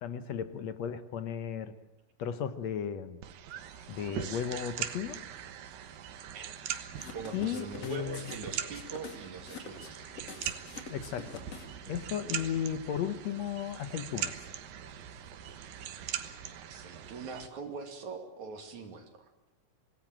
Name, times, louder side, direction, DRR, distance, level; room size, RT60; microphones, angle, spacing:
voice 1, 0.0-1.8 2.2-3.2 3.9-5.2 7.3-8.2 10.9-14.4, left 8 dB, 65° left, 11 dB, 1.9 m, -35 dB
sound 1, 3.2-17.5, right 10 dB, 85° right, 3.0 m, -41 dB
sound 2, 6.9-11.9, left 5 dB, 50° left, 3.3 m, -46 dB
voice 2, 7.1-10.2 16.7-19.3, right 4 dB, 60° right, 5 dB, 3.6 m, -42 dB
26.0 x 18.5 x 8.9 m, 0.95 s
omnidirectional pair, 3.9 m